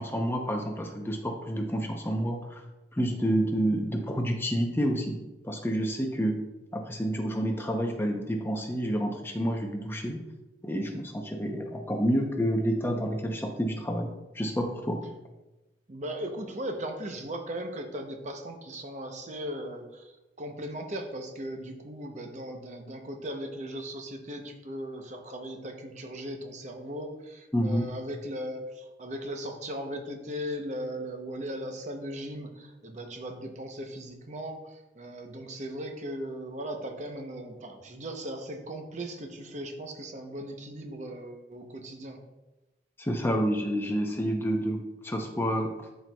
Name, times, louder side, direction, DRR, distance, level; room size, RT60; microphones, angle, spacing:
voice 1, 0.0-2.6 2.9-5.2 5.4-6.4 6.7-10.2 10.6-15.0 27.5-27.9 43.0-45.7, equal, 15° left, 2 dB, 0.6 m, -29 dB
voice 2, 15.9-20.1 20.4-42.2, equal, 40° right, 4 dB, 0.7 m, -38 dB
12.0 x 4.5 x 2.3 m, 1.0 s
head